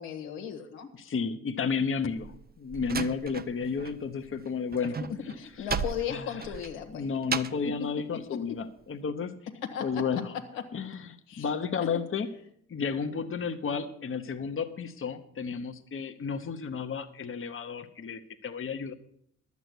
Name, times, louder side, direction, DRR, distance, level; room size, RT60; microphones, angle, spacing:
voice 1, 0.0-0.9 5.1-7.1 8.3-8.4 9.7-10.2 10.5-10.6 11.3-11.5 11.9-12.0, left 8 dB, 85° left, 3 dB, 1.4 m, -36 dB
voice 2, 1.0-5.0 5.6-5.7 6.1-6.4 6.9-9.4 9.8-10.3 10.7-12.3 12.7-18.9, left 5 dB, 35° left, 7 dB, 1.0 m, -32 dB
Slam, 2.2-4.0 4.2-7.7, right 5 dB, 25° right, 0.7 m, -35 dB
11.5 x 8.3 x 6.2 m, 0.69 s
hypercardioid pair, 50°, 35 cm